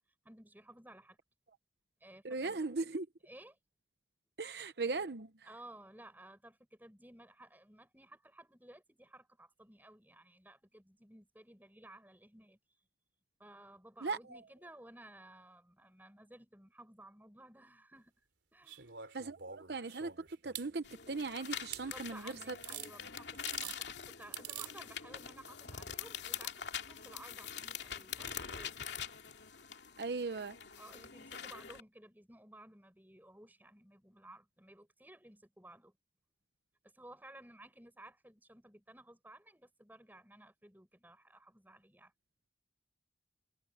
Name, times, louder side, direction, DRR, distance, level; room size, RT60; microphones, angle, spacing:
voice 1, 0.2-1.2 2.0-2.6 3.3-3.5 5.5-12.6 13.4-18.1 18.5-18.9 21.8-28.7 30.8-36.0 36.8-42.1, right 1 dB, 10° right, 7.8 m, -56 dB
voice 2, 2.2-3.1 4.4-5.5 14.0-14.4 19.1-22.6 30.0-30.6, right 3 dB, 65° right, 0.8 m, -38 dB
sound 1, 18.7-20.7 21.7-21.8 22.6-22.9 23.3-23.8 24.3-24.7 26.0-26.1, right 10 dB, 85° right, 3.5 m, -45 dB
sound 2, 20.8-31.8, left 8 dB, 75° left, 2.5 m, -44 dB
head